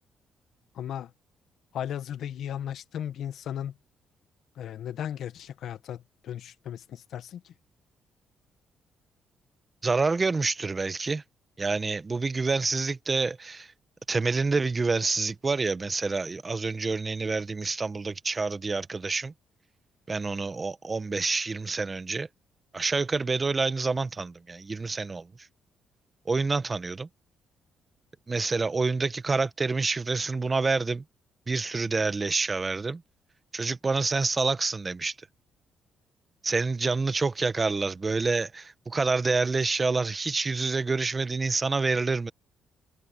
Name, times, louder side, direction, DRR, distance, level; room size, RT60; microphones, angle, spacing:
voice 1, 0.7-1.1 1.7-3.8 4.5-7.5, left 10 dB, 70° left, 1.2 m, -36 dB
voice 2, 9.8-11.2 11.6-13.7 14.1-19.3 20.1-22.3 22.7-25.3 26.3-27.1 28.3-31.0 31.5-33.0 33.5-35.1 36.4-42.3, right 4 dB, 30° right, 1.1 m, -27 dB
cardioid pair, 90°, 0 cm